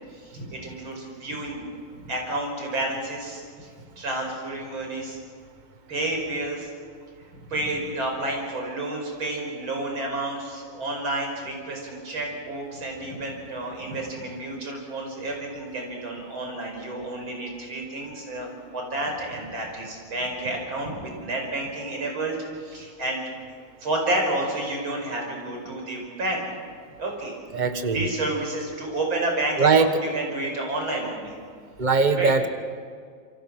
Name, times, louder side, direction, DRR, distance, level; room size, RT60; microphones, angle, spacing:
voice 1, 0.1-1.6 2.0-3.7 4.0-5.2 5.9-6.7 7.5-23.2 23.5-26.4 27.0-27.3 27.9-31.3 32.2-32.3, right 2 dB, 75° right, 1 dB, 6.1 m, -30 dB
voice 2, 27.5-28.0 29.6-29.9 31.8-32.5, right 4 dB, 25° right, 8 dB, 1.4 m, -20 dB
27.5 x 24.0 x 6.2 m, 2.1 s
omnidirectional pair, 2.2 m